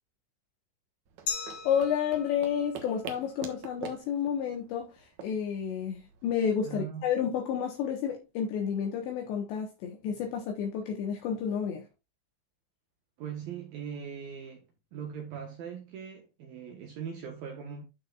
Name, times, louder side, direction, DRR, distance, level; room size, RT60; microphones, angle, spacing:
sound 1, 1.1-6.3, right 7 dB, 90° right, 1.6 m, -45 dB
Glass, 1.3-4.0, left 7 dB, 55° left, 4.1 m, -40 dB
voice 1, 1.6-11.8, left 8 dB, 70° left, 3.3 m, -31 dB
voice 2, 6.6-7.0 13.2-17.8, right 7 dB, 65° right, 2.4 m, -40 dB
13.0 x 4.8 x 2.4 m
omnidirectional pair, 5.6 m